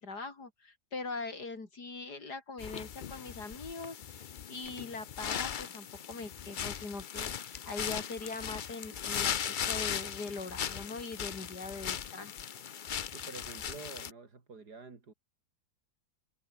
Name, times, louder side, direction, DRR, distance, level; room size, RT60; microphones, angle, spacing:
voice 1, 0.0-9.4 9.7-12.3, left 3 dB, 85° left, 4.5 m, -42 dB
sound 1, 2.6-14.1, left 8 dB, 60° left, 0.5 m, -38 dB
voice 2, 13.1-15.1, right 4 dB, 80° right, 3.7 m, -48 dB
omnidirectional pair, 1.7 m